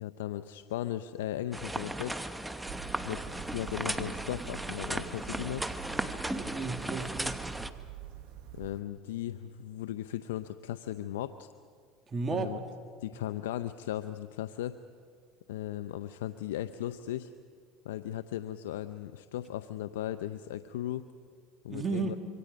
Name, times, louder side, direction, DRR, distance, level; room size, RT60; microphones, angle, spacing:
voice 1, 0.0-2.2 3.0-5.7 8.5-11.5 12.3-12.6 13.0-14.8 15.5-17.3 17.8-21.1 21.6-22.2, left 12 dB, 90° left, 12 dB, 0.5 m, -37 dB
sound 1, 1.5-7.7, right 1 dB, 5° right, 1.1 m, -36 dB
sound 2, 2.6-8.8, right 11 dB, 65° right, 1.3 m, -46 dB
voice 2, 6.3-7.4 12.1-12.5 21.7-22.2, right 4 dB, 30° right, 6 dB, 2.0 m, -34 dB
26.0 x 24.0 x 5.2 m, 2.1 s
supercardioid pair, 95°, 0 cm